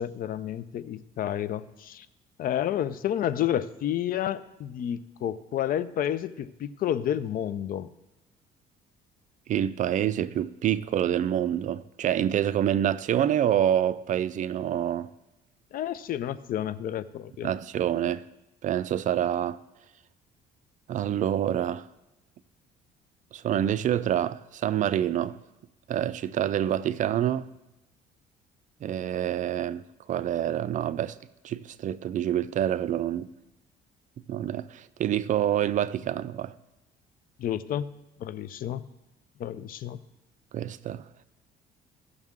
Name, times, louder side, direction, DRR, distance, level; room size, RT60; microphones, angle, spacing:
voice 1, 0.0-2.1 2.4-7.9 15.7-17.5 37.4-37.9 38.2-38.8 39.4-40.0, left 10 dB, 55° left, 0.5 m, -30 dB
voice 2, 9.5-15.1 17.4-18.2 18.6-19.6 20.9-21.9 23.3-25.4 25.9-27.5 28.8-29.8 30.1-31.2 31.4-33.3 34.3-36.5 40.5-41.0, right 10 dB, 50° right, 0.4 m, -27 dB
16.0 x 6.4 x 3.6 m
cardioid pair, 110°, 17 cm